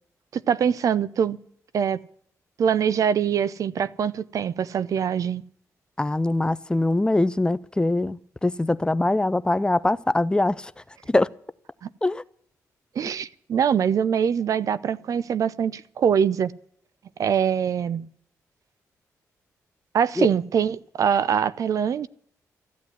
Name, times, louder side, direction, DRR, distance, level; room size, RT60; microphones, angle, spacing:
voice 1, 0.3-1.4 1.7-2.0 2.6-5.4 11.8-11.9 12.9-16.5 17.2-18.0 19.9-22.1, right 8 dB, 60° right, 0.6 m, -23 dB
voice 2, 6.0-10.6 11.1-11.3 12.0-12.2 20.2-20.3, left 2 dB, 15° left, 0.6 m, -22 dB
14.5 x 8.4 x 9.7 m
cardioid pair, 85°, 6 cm